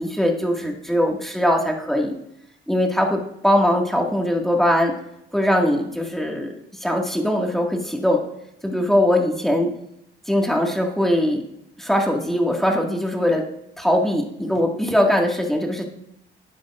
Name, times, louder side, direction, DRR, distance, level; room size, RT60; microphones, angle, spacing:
voice 1, 0.0-2.1 2.7-4.9 5.3-6.5 6.8-8.2 8.6-9.7 10.3-11.4 11.8-13.4 13.8-15.8, left 1 dB, ahead, 0 dB, 1.9 m, -21 dB
12.5 x 9.3 x 2.5 m, 0.79 s
cardioid pair, 90°, 20 cm